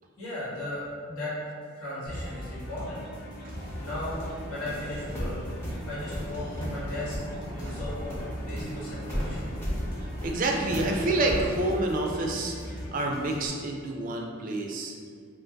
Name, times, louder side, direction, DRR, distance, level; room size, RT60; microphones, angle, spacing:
voice 1, 0.2-1.3 1.8-3.0 3.8-4.2 4.5-5.3 5.9-7.2 7.5-9.5, left 1 dB, 85° left, -9 dB, 1.4 m, -36 dB
sound 1, 2.1-13.5, equal, 45° left, 0.8 m, -39 dB
sound 2, 3.5-11.5, equal, 10° left, 0.6 m, -36 dB
voice 2, 10.2-14.9, right 2 dB, 40° right, 1 dB, 0.3 m, -28 dB
2.6 x 2.5 x 3.3 m, 2.1 s
head